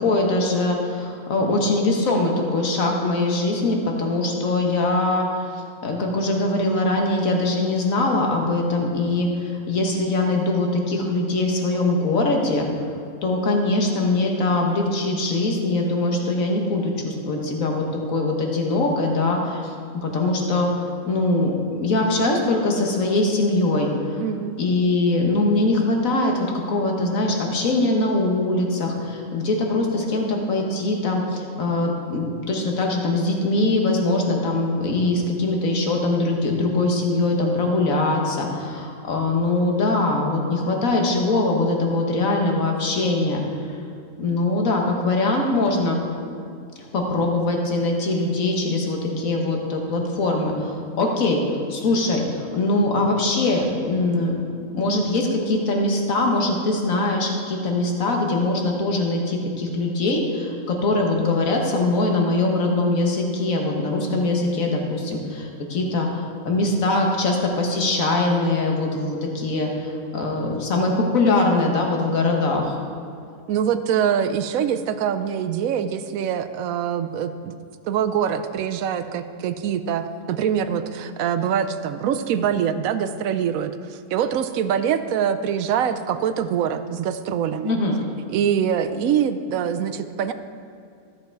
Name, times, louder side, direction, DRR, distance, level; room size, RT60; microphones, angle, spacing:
voice 1, 0.0-12.7 13.2-24.2 24.6-43.4 44.2-46.0 46.9-51.4 51.7-54.4 54.7-66.1 66.5-72.8 87.6-88.0, left 2 dB, 65° left, 1 dB, 1.7 m, -22 dB
voice 2, 24.2-24.6 73.5-77.5 77.8-87.8 88.3-90.3, right 8 dB, 75° right, 10 dB, 1.0 m, -24 dB
14.0 x 6.8 x 4.6 m, 2.4 s
omnidirectional pair, 1.5 m